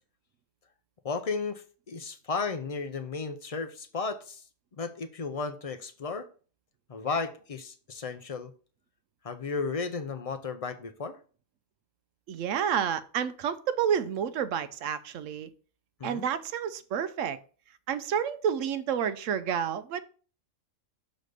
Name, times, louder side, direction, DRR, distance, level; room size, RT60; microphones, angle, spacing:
voice 1, 1.0-4.4 4.8-6.3 6.9-8.5 9.2-11.2 16.0-16.2, left 4 dB, 45° left, 0.5 m, -34 dB
voice 2, 12.3-15.5 16.0-17.4 17.9-20.0, right 8 dB, 80° right, 0.9 m, -29 dB
6.5 x 4.1 x 4.9 m
omnidirectional pair, 1.3 m